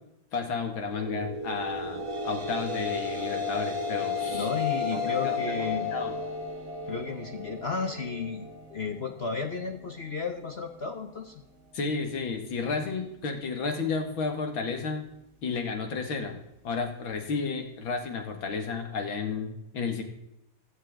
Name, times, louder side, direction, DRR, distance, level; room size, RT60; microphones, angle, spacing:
voice 1, 0.3-4.5 4.9-5.4 5.9-6.1 11.7-15.0 15.4-16.4 16.6-20.0, left 4 dB, 70° left, 4 dB, 2.7 m, -32 dB
sound 1, 0.9-5.8, right 2 dB, 60° right, 2.1 m, -37 dB
sound 2, 1.6-10.2, left 7 dB, 35° right, 2.2 m, -34 dB
voice 2, 4.2-5.9 6.9-11.4, left 5 dB, 55° left, 5 dB, 0.7 m, -33 dB
17.0 x 11.5 x 3.7 m, 0.84 s
omnidirectional pair, 2.3 m